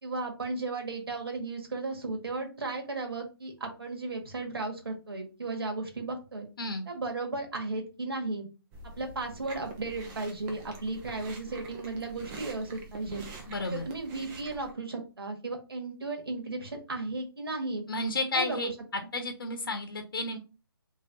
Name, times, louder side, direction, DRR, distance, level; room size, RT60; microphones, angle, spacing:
voice 1, 0.0-6.5 6.9-8.5 9.0-13.3 13.7-17.8 18.3-18.7, right 3 dB, 75° right, 3 dB, 1.7 m, -35 dB
Chewing mastication, 8.7-14.7, right 3 dB, 10° right, 0.4 m, -46 dB
voice 2, 13.5-13.8 17.9-18.7 19.1-20.4, left 2 dB, 65° left, 6 dB, 0.9 m, -32 dB
3.7 x 3.3 x 3.8 m, 0.31 s
hypercardioid pair, 160°, 13 cm